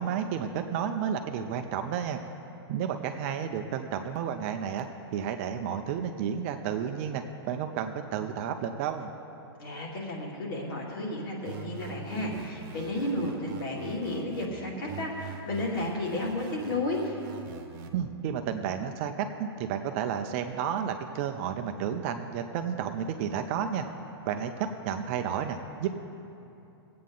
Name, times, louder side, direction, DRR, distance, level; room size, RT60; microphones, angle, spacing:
voice 1, 0.0-2.2 2.7-4.9 5.1-9.1 17.9-23.9 24.2-25.9, right 8 dB, 30° right, 6 dB, 0.5 m, -31 dB
voice 2, 9.6-17.2, left 1 dB, 55° left, -2 dB, 2.5 m, -32 dB
sound 1, 11.4-14.5 14.9-17.9, right 5 dB, 45° right, 1.1 m, -44 dB
18.5 x 8.5 x 3.8 m, 2.7 s
hypercardioid pair, 160°, 14 cm